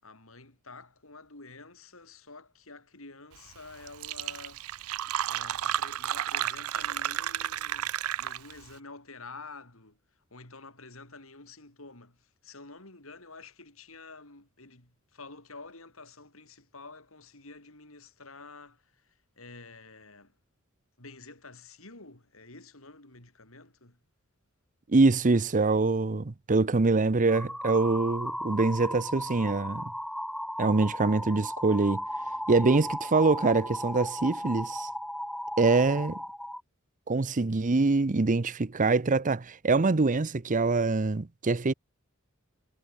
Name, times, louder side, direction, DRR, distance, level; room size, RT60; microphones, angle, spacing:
voice 1, 0.0-4.7 5.3-10.0 10.3-19.0 19.4-20.3 21.0-24.0, left 3 dB, 70° left, 5.2 m, -49 dB
Fill (with liquid), 3.6-3.7 3.9-8.6, right 11 dB, 85° right, 0.5 m, -32 dB
voice 2, 24.9-29.9 30.6-32.0 32.5-34.9 35.6-36.2 37.1-41.7, right 3 dB, 35° right, 0.7 m, -24 dB
sound 1, 27.3-36.6, equal, ahead, 0.5 m, -36 dB
head